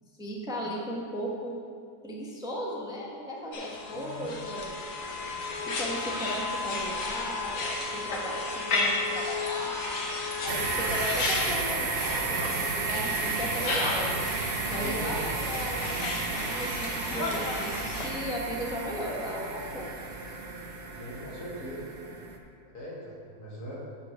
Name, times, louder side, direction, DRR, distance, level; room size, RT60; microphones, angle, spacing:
voice 1, 0.2-1.6 2.0-4.8 5.7-10.1 10.4-14.2 14.7-19.9, equal, 5° right, -3 dB, 0.8 m, -36 dB
sound 1, 3.5-18.1, left 3 dB, 60° left, 1.3 m, -33 dB
voice 2, 3.9-4.3 14.8-15.1 21.0-21.8 22.7-23.8, equal, 90° left, -5 dB, 2.4 m, -40 dB
sound 2, 10.5-22.4, right 4 dB, 50° right, 0.7 m, -33 dB
8.2 x 4.7 x 6.1 m, 2.3 s
omnidirectional pair, 1.6 m